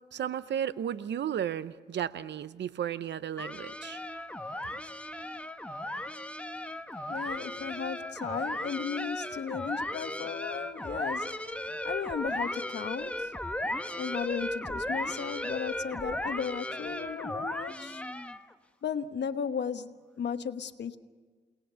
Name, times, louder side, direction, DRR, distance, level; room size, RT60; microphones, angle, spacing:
voice 1, 0.1-4.0, right 9 dB, 85° right, 0.7 m, -34 dB
sound 1, 3.4-18.5, left 1 dB, 5° left, 1.3 m, -36 dB
voice 2, 7.1-13.4 13.9-18.0 18.8-21.0, left 7 dB, 80° left, 1.2 m, -35 dB
29.0 x 19.5 x 6.9 m
cardioid pair, 75°, 18 cm